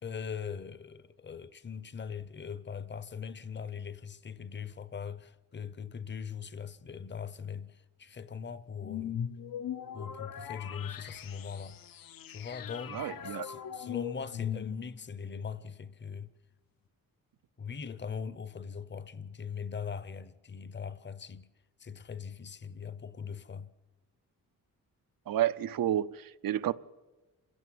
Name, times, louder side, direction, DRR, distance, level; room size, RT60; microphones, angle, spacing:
voice 1, 0.0-9.3 9.9-11.8 12.3-16.3 17.6-21.5 21.8-23.7, left 6 dB, 30° left, 0.7 m, -41 dB
sound 1, 8.8-15.1, left 9 dB, 75° left, 0.9 m, -40 dB
voice 2, 12.9-13.5 25.3-26.7, right 11 dB, 80° right, 0.7 m, -30 dB
28.0 x 16.5 x 7.8 m
wide cardioid pair, 180°, 34 cm